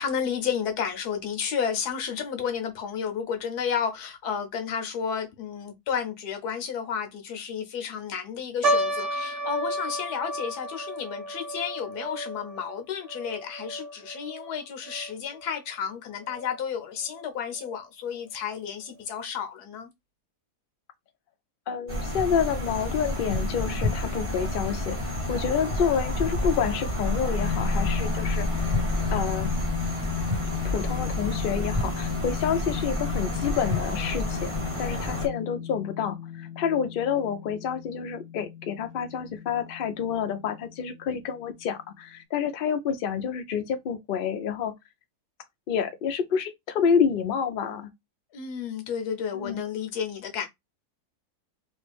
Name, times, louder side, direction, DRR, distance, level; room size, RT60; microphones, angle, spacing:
voice 1, 0.0-19.9 48.3-50.5, left 7 dB, 90° left, 1.3 m, -32 dB
sound 1, 8.6-15.1 15.4-15.5 16.2-16.5 17.1-17.2 17.6-17.7, right 1 dB, 45° right, 0.5 m, -32 dB
voice 2, 21.7-28.5 29.1-29.5 30.6-44.7 45.7-47.9 49.3-49.6, left 7 dB, 75° left, 0.5 m, -28 dB
sound 2, 21.9-35.3, left 1 dB, 25° right, 0.9 m, -29 dB
sound 3, 27.4-41.8, left 9 dB, 50° left, 0.8 m, -36 dB
3.2 x 2.5 x 3.3 m
omnidirectional pair, 1.6 m